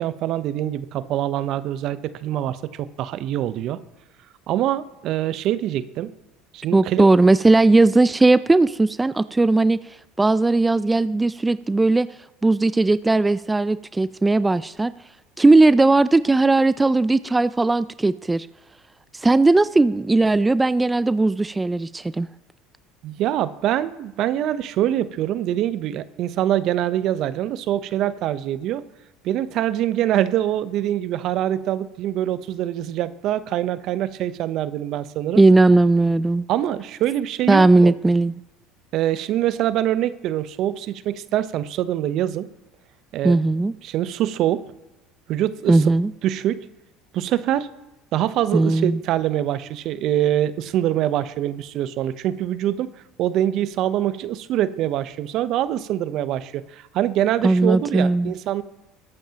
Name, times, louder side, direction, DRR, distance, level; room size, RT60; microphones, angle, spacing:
voice 1, 0.0-3.8 4.5-6.1 6.5-7.1 23.0-28.8 29.2-35.4 36.5-37.9 38.9-42.5 43.1-43.4 43.8-44.7 45.3-45.9 46.2-46.6 47.1-47.7 48.1-52.9 53.2-58.6, right 12 dB, 60° right, 14 dB, 0.8 m, -24 dB
voice 2, 6.7-9.8 10.2-12.1 12.4-14.9 15.4-18.5 19.1-22.3 35.4-36.4 37.5-38.4 43.2-43.7 45.7-46.1 48.5-49.0 57.4-58.3, right 2 dB, 15° right, 15 dB, 0.4 m, -17 dB
21.0 x 8.9 x 2.9 m, 0.97 s
hypercardioid pair, 75°, 0 cm